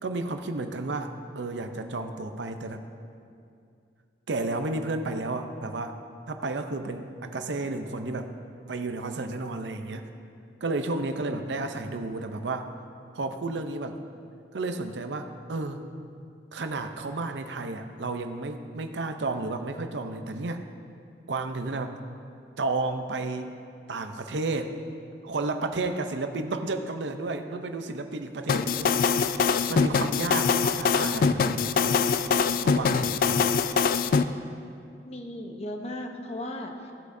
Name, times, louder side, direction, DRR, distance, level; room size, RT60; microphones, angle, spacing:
voice 1, 0.0-2.8 4.3-6.0 6.3-8.3 8.7-10.0 10.6-12.7 13.1-14.0 14.5-15.8 16.5-20.6 21.3-22.0 22.6-23.6 23.9-24.7 25.2-29.1 29.7-31.9 32.6-33.6, right 2 dB, 75° right, 7 dB, 0.6 m, -32 dB
sound 1, 28.5-34.2, left 5 dB, 50° left, 0.3 m, -23 dB
voice 2, 35.1-36.9, left 1 dB, 35° left, 3 dB, 0.9 m, -36 dB
16.0 x 8.2 x 2.7 m, 2.4 s
head